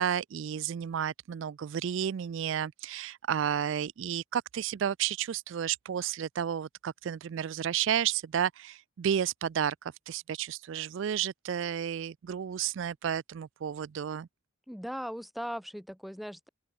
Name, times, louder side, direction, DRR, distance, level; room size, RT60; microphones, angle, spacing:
voice 1, 0.0-9.8 10.1-14.3, right 9 dB, 65° right, 0.3 m, -32 dB
voice 2, 14.7-16.5, equal, ahead, 0.7 m, -38 dB
head